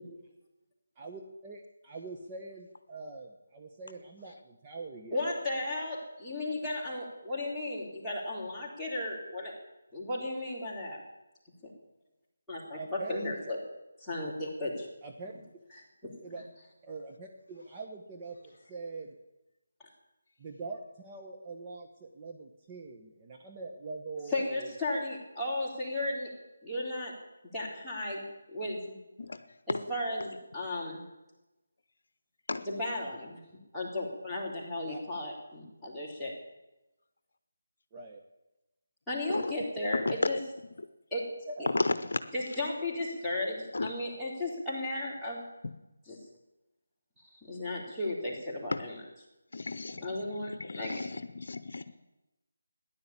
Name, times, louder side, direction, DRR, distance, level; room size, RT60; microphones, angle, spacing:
voice 1, 1.0-5.3 12.7-13.4 15.0-15.3 16.2-16.4 16.8-19.1 20.4-24.7 34.8-35.0 37.9-38.2 41.5-41.8, right 3 dB, 20° right, 1 dB, 1.2 m, -43 dB
voice 2, 5.1-9.5 9.9-11.0 12.5-13.6 14.0-14.9 16.0-16.1 24.3-26.3 26.6-27.1 27.5-28.2 28.5-29.0 29.7-31.0 32.6-33.4 33.7-36.3 39.1-40.4 41.1-41.2 42.3-45.4 46.1-46.2 47.5-49.0 50.0-51.0, left 1 dB, ahead, -11 dB, 3.9 m, -35 dB
voice 3, 41.7-42.2 43.7-43.9 48.7-48.8 49.5-50.1 50.6-51.8, left 3 dB, 60° left, 12 dB, 0.9 m, -33 dB
15.0 x 10.5 x 8.5 m, 0.99 s
figure-of-eight pair, 155°, 0 cm